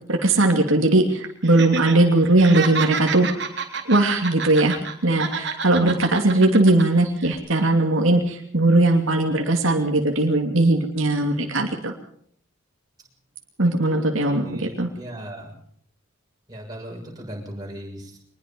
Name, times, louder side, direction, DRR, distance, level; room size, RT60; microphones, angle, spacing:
voice 1, 0.1-3.3 3.8-11.9 13.6-14.9, right 2 dB, 75° right, 2 dB, 2.7 m, -19 dB
Laughter, 1.4-1.9 2.2-4.9 5.2-6.8 7.2-7.3, right 6 dB, 55° right, 3.6 m, -29 dB
voice 2, 13.9-15.5 16.5-18.2, equal, 20° right, -1 dB, 6.8 m, -38 dB
24.0 x 20.5 x 5.4 m, 0.62 s
head